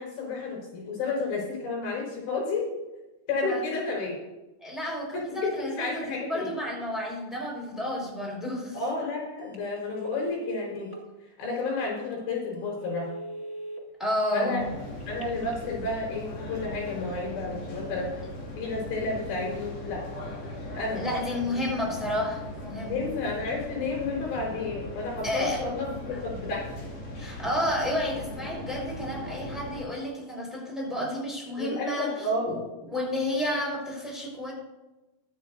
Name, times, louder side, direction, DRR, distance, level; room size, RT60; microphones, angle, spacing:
voice 1, 0.0-2.7 3.3-4.2 5.1-6.5 8.7-10.9 11.4-13.1 14.3-14.6 15.1-18.1 18.6-20.0 20.7-21.1 22.9-26.7 31.6-32.6, left 3 dB, 85° left, -2 dB, 6.8 m, -31 dB
voice 2, 4.6-8.8 14.0-14.6 21.0-23.0 25.2-25.6 27.2-34.5, left 1 dB, ahead, -2 dB, 4.2 m, -31 dB
Telephone, 9.4-9.6 10.0-11.0 11.6-11.7 12.1-12.2 12.7-13.8 15.0-15.6, right 1 dB, 20° left, 0.3 m, -40 dB
sound 1, 14.6-29.8, left 1 dB, 45° left, 3.2 m, -39 dB
22.0 x 9.3 x 2.7 m, 1.1 s
omnidirectional pair, 4.9 m